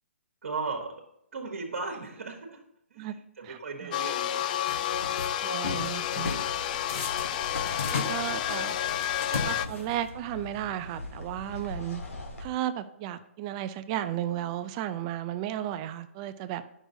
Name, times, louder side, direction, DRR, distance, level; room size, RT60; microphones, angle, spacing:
voice 1, 0.4-0.9 1.3-2.6 2.9-4.4, right 4 dB, 70° right, 2 dB, 1.4 m, -36 dB
voice 2, 3.4-3.9 5.4-6.4 7.9-8.8 9.3-12.0 12.4-16.6, right 12 dB, 30° right, 12 dB, 0.4 m, -34 dB
sound 1, 3.9-9.7, left 11 dB, 35° left, 0.3 m, -30 dB
sound 2, 4.7-5.3 5.6-6.5 6.9-10.1, left 4 dB, 70° left, 1.4 m, -35 dB
sound 3, 5.9-12.5, left 1 dB, 85° left, 1.8 m, -44 dB
9.9 x 6.0 x 2.7 m, 0.76 s
hypercardioid pair, 140°, 7 cm